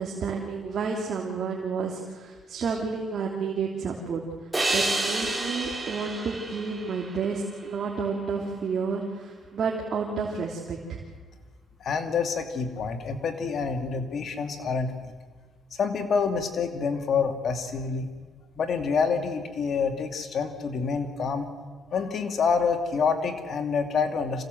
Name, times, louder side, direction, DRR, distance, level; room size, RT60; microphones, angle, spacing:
voice 1, 0.0-4.2 4.7-11.0, right 5 dB, 60° right, -1 dB, 3.0 m, -30 dB
sound 1, 4.5-7.8, right 2 dB, 10° right, 6.3 m, -30 dB
voice 2, 11.8-14.9 15.7-18.1 18.6-21.5 21.9-24.4, left 5 dB, 55° left, 6 dB, 2.6 m, -27 dB
26.5 x 17.0 x 7.9 m, 1.4 s
cardioid pair, 90°, 0 cm